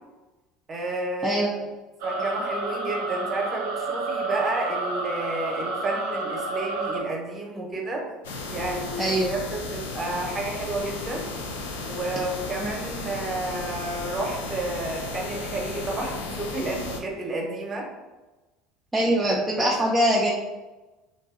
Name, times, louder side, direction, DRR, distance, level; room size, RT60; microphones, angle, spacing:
voice 1, 0.7-1.6 2.0-8.0 8.5-11.3 11.8-17.9 19.6-19.7, right 2 dB, 30° right, 0 dB, 0.7 m, -31 dB
sound 1, 2.0-7.0, right 3 dB, 75° right, 0.5 m, -30 dB
sound 2, 8.2-17.0, left 3 dB, 80° left, 0.4 m, -34 dB
voice 2, 9.0-9.3 12.6-12.7 18.9-20.3, right 1 dB, 10° right, -3 dB, 0.4 m, -22 dB
2.6 x 2.3 x 2.4 m, 1.1 s
hypercardioid pair, 75°, 0 cm